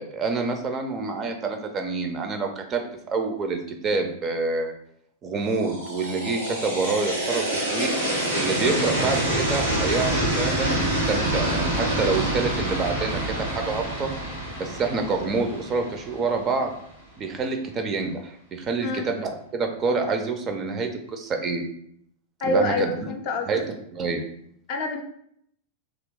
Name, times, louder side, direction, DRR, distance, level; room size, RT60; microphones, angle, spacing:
voice 1, 0.0-2.8 3.1-4.7 5.2-7.9 8.3-14.1 14.6-16.7 17.2-21.6 22.4-23.1 23.5-23.6 23.9-24.2, right 4 dB, 30° right, 5 dB, 0.5 m, -27 dB
sound 1, 5.5-16.5, right 1 dB, 85° right, 1.3 m, -27 dB
voice 2, 22.4-23.5 24.7-25.0, left 1 dB, 45° left, 4 dB, 0.5 m, -26 dB
2.8 x 2.4 x 3.4 m, 0.69 s
figure-of-eight pair, 90°, 0 cm